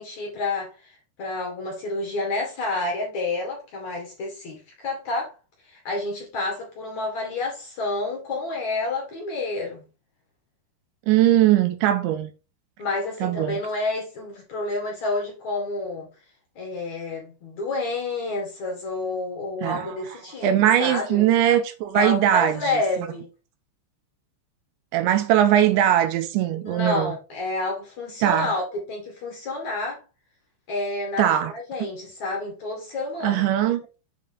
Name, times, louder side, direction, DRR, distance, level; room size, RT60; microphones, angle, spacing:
voice 1, 0.0-5.3 5.7-9.8 12.8-16.1 16.6-21.2 21.9-23.3 26.6-28.6 28.9-30.0 30.7-33.5, left 2 dB, 50° left, 2.4 m, -29 dB
voice 2, 11.1-12.3 13.2-13.6 19.6-19.9 20.4-22.8 24.9-27.2 28.2-28.5 31.2-31.5 33.2-33.8, right 11 dB, 80° right, 2.9 m, -20 dB
7.6 x 5.0 x 3.7 m
omnidirectional pair, 5.5 m